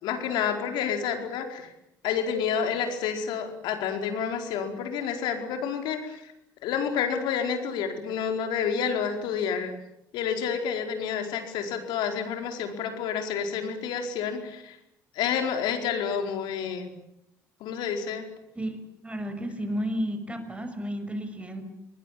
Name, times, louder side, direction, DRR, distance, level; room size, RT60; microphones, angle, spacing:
voice 1, 0.0-1.7 2.0-6.3 6.6-9.7 10.1-14.8 15.1-16.9 17.6-18.2, left 7 dB, 75° left, 5 dB, 4.8 m, -29 dB
voice 2, 19.0-21.6, equal, 15° right, 8 dB, 6.4 m, -32 dB
26.5 x 20.5 x 8.7 m, 0.81 s
hypercardioid pair, 65°, 8 cm